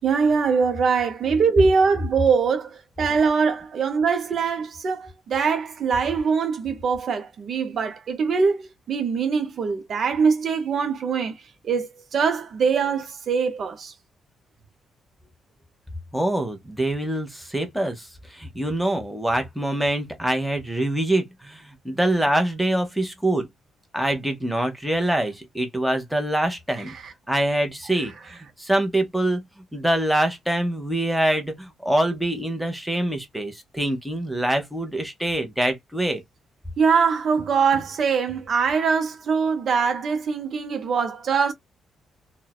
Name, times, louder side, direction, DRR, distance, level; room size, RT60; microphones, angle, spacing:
voice 1, 0.0-11.3 11.6-13.9 27.0-27.1 36.8-41.5, right 5 dB, 60° right, 0.6 m, -22 dB
voice 2, 16.1-23.5 23.9-26.9 27.3-29.4 29.7-36.2, right 1 dB, ahead, 0.9 m, -25 dB
2.5 x 2.1 x 2.3 m
cardioid pair, 80°, 0 cm